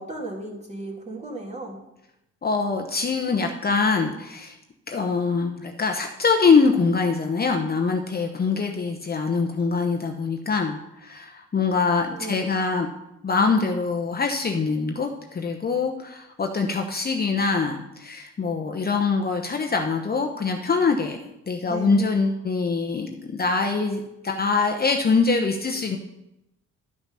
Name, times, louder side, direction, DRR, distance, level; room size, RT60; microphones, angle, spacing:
voice 1, 0.0-1.8 12.1-12.5 21.6-22.1, right 2 dB, 20° right, -1 dB, 2.7 m, -35 dB
voice 2, 2.4-4.6 4.9-12.9 13.2-21.2 21.5-26.0, left 4 dB, 30° left, 3 dB, 0.9 m, -24 dB
11.5 x 5.8 x 5.6 m, 0.88 s
cardioid pair, 90°, 30 cm